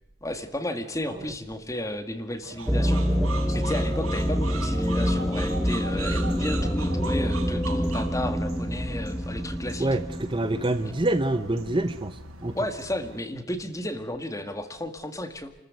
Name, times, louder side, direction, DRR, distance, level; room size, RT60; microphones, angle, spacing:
voice 1, 0.2-3.0 3.5-9.9 12.5-15.5, left 1 dB, 15° left, 1.9 m, -33 dB
sound 1, 2.4-13.2, right 4 dB, 80° right, 4.5 m, -40 dB
sound 2, 2.7-12.0, equal, ahead, 1.7 m, -27 dB
voice 2, 9.8-12.6, right 1 dB, 20° right, 0.8 m, -26 dB
29.5 x 14.0 x 9.5 m
head